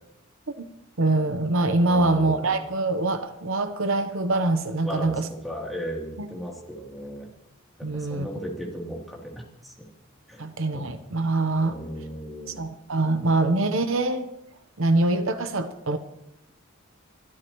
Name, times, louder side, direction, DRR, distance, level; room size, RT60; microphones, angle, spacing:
voice 1, 1.0-5.3 6.2-6.3 7.8-8.3 10.4-11.7 12.6-14.3 14.8-16.0, right 2 dB, 65° right, 9 dB, 0.9 m, -24 dB
voice 2, 1.8-2.6 4.8-7.3 7.9-9.7 10.3-10.4 10.7-10.9 11.5-12.7, equal, ahead, -3 dB, 3.1 m, -36 dB
24.0 x 13.5 x 3.1 m, 0.80 s
head